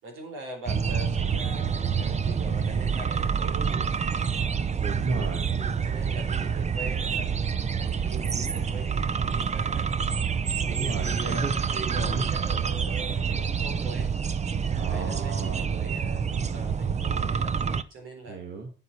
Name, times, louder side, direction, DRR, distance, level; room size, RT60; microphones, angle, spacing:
voice 1, 0.0-3.9 5.6-7.3 7.8-9.9 10.6-14.1 14.7-18.4, right 2 dB, 90° right, 3 dB, 4.0 m, -42 dB
sound 1, 0.7-17.8, right 6 dB, 35° right, 0.7 m, -27 dB
voice 2, 4.8-5.6 10.6-11.6 11.9-12.2 14.8-15.7 18.3-18.7, right 4 dB, 60° right, 3 dB, 2.0 m, -34 dB
9.5 x 8.1 x 4.6 m, 0.35 s
cardioid pair, 90°, 20 cm